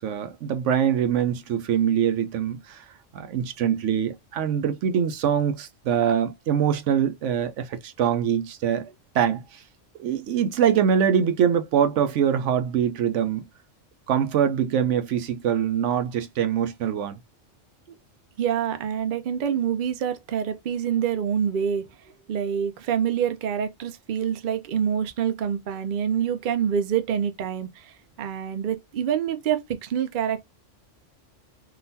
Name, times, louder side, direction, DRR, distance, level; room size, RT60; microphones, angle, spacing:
voice 1, 0.0-2.8 3.1-8.9 9.1-9.6 10.0-13.5 14.1-17.2, right 8 dB, 75° right, 0.9 m, -23 dB
voice 2, 18.4-21.9 22.3-27.9 28.2-30.4, right 8 dB, 55° right, 0.6 m, -26 dB
3.8 x 2.5 x 2.6 m
omnidirectional pair, 1.3 m